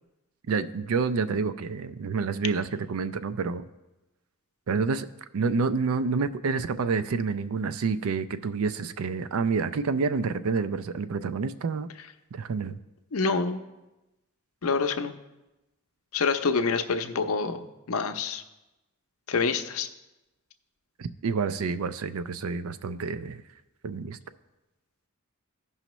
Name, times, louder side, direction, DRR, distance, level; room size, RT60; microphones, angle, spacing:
voice 1, 0.5-3.6 4.7-5.1 5.3-11.9 12.3-12.8 21.0-23.4 23.8-24.2, right 4 dB, 85° right, 12 dB, 0.4 m, -28 dB
voice 2, 13.1-13.6 14.6-15.1 16.1-18.4 19.3-19.9, left 4 dB, 85° left, 7 dB, 0.6 m, -27 dB
15.0 x 5.6 x 3.0 m, 1.0 s
head